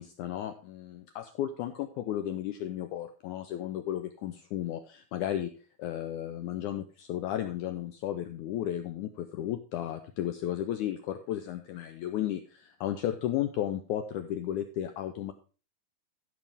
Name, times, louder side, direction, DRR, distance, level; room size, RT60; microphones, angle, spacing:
voice 1, 0.0-5.5 5.8-15.3, left 11 dB, 80° left, 8 dB, 1.8 m, -34 dB
13.5 x 7.2 x 3.5 m, 0.36 s
omnidirectional pair, 4.1 m